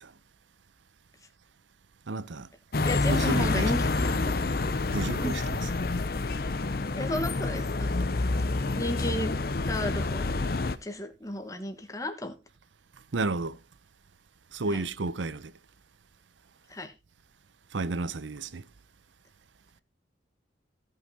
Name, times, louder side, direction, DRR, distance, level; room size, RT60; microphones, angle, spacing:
voice 1, 2.1-2.4 3.1-3.7 4.9-5.6 13.1-13.5 14.6-15.4 17.7-18.5, right 3 dB, 85° right, 0.7 m, -31 dB
sound 1, 2.7-10.8, left 3 dB, 55° left, 0.7 m, -28 dB
voice 2, 2.8-4.4 5.2-5.4 5.7-5.8 6.9-8.0 8.8-9.3 9.6-10.4 10.8-12.3 14.7-14.8 16.7-16.9, left 1 dB, 20° left, 1.3 m, -33 dB
16.0 x 5.7 x 4.1 m
head